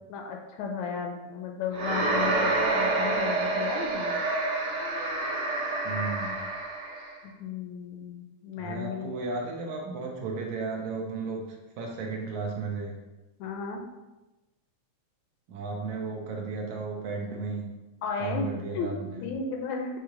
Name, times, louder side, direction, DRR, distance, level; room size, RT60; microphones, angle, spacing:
voice 1, 0.1-4.2 7.2-9.2 13.4-13.8 18.0-18.5 18.7-18.9 19.2-20.0, left 5 dB, 80° left, 2 dB, 1.8 m, -34 dB
sound 1, 1.7-7.1, right 2 dB, 55° right, 1.2 m, -28 dB
voice 2, 5.8-6.4 8.6-12.9 15.5-17.7 18.2-19.2, right 4 dB, 75° right, 0 dB, 2.2 m, -34 dB
7.9 x 3.2 x 3.7 m, 1.1 s
omnidirectional pair, 3.5 m